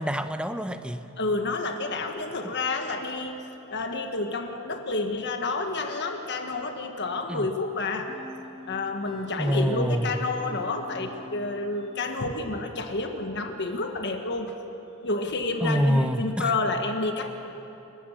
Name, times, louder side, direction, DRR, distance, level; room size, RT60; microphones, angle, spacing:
voice 1, 0.0-1.1 7.3-7.5 9.4-10.1 15.6-16.5, equal, 5° right, 9 dB, 0.8 m, -26 dB
voice 2, 1.2-3.4 3.7-8.1 8.7-14.5 15.0-17.3, left 3 dB, 50° left, 5 dB, 1.4 m, -29 dB
sound 1, 8.1-12.7, equal, 25° right, 1.6 m, -45 dB
29.0 x 15.5 x 6.5 m, 2.9 s
head